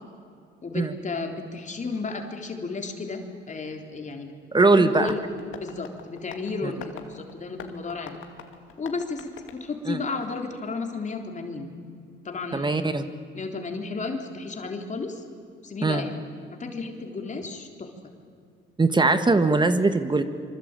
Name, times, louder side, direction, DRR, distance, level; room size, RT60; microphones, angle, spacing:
voice 1, 0.6-4.3 4.8-5.2 5.6-8.2 8.8-11.7 12.2-12.9 13.3-15.2 15.6-16.2 16.5-17.9, left 4 dB, 40° left, 3 dB, 3.6 m, -33 dB
voice 2, 4.5-5.1 6.6-6.7 9.8-10.0 12.5-13.0 15.8-16.1 18.8-20.2, right 3 dB, 20° right, 10 dB, 1.6 m, -21 dB
Tap, 5.1-10.5, left 8 dB, 85° left, 2.6 m, -46 dB
25.5 x 25.0 x 9.0 m, 2.5 s
cardioid pair, 90°, 20 cm